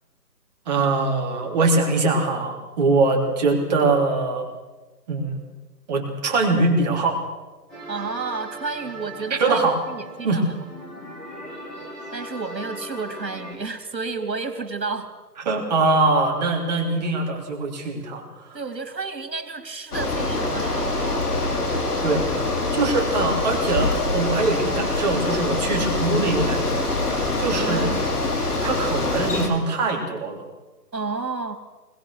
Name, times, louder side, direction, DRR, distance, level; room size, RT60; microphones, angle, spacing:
voice 1, 0.6-4.4 5.1-5.4 5.9-7.2 9.4-9.8 10.2-10.4 15.4-18.6 22.0-26.9 27.4-27.9 28.6-30.4, right 3 dB, 25° right, 0 dB, 3.4 m, -22 dB
sound 1, 7.7-13.5, right 1 dB, ahead, 1.1 m, -39 dB
voice 2, 7.9-10.4 12.1-15.1 18.5-21.3 27.6-28.1 30.9-31.6, right 4 dB, 85° right, 7 dB, 3.4 m, -31 dB
Bicycle, 19.9-29.5, left 2 dB, 65° left, 5.2 m, -24 dB
23.0 x 21.5 x 6.5 m, 1.2 s
hypercardioid pair, 165°, 49 cm